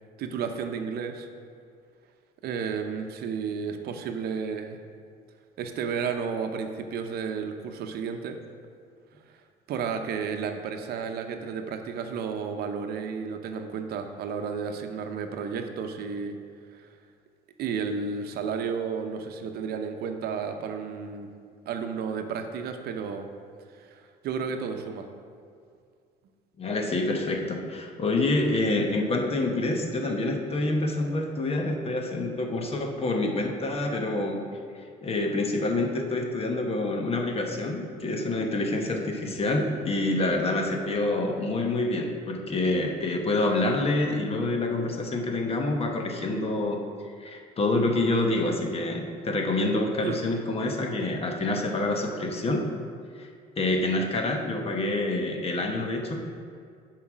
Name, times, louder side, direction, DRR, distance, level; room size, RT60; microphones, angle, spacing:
voice 1, 0.2-1.3 2.4-4.8 5.6-8.4 9.7-16.4 16.7-16.9 17.6-21.3 21.7-23.3 23.7-25.1 50.0-50.2, right 6 dB, 70° right, 6 dB, 0.7 m, -32 dB
voice 2, 26.6-34.4 35.0-46.8 47.2-52.7 53.2-53.3 53.6-56.2, left 2 dB, 35° left, 3 dB, 1.0 m, -27 dB
7.2 x 4.8 x 6.1 m, 2.2 s
cardioid pair, 110°, 17 cm